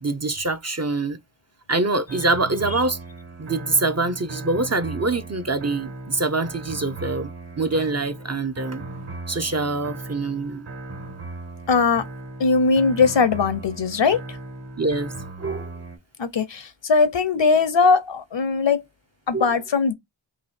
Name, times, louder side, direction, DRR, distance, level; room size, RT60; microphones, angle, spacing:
voice 1, 0.0-1.2 1.7-3.0 3.4-7.3 7.6-8.8 9.3-10.7 14.8-15.1 15.4-15.7 19.3-19.5, right 3 dB, 35° right, 0.5 m, -24 dB
sound 1, 2.1-16.0, right 2 dB, 55° right, 1.4 m, -37 dB
voice 2, 11.7-12.0 12.4-14.2 16.2-18.8 19.3-19.9, left 4 dB, 60° left, 0.7 m, -20 dB
2.9 x 2.7 x 4.2 m
wide cardioid pair, 45°, 49 cm